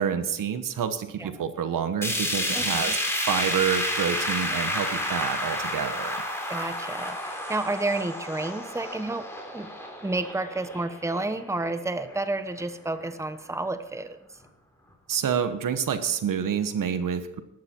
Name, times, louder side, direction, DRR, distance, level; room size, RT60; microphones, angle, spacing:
voice 1, 0.0-6.2 15.1-17.4, right 8 dB, 75° right, 10 dB, 1.2 m, -28 dB
sound 1, 2.0-12.2 12.6-12.7 13.0-13.1 14.0-14.1, left 1 dB, 10° left, 3.7 m, -30 dB
voice 2, 2.5-2.9 6.5-9.3 9.5-9.7 10.0-14.2, right 2 dB, 10° right, 10 dB, 1.0 m, -30 dB
14.0 x 12.0 x 4.5 m, 0.85 s
cardioid pair, 80°, 32 cm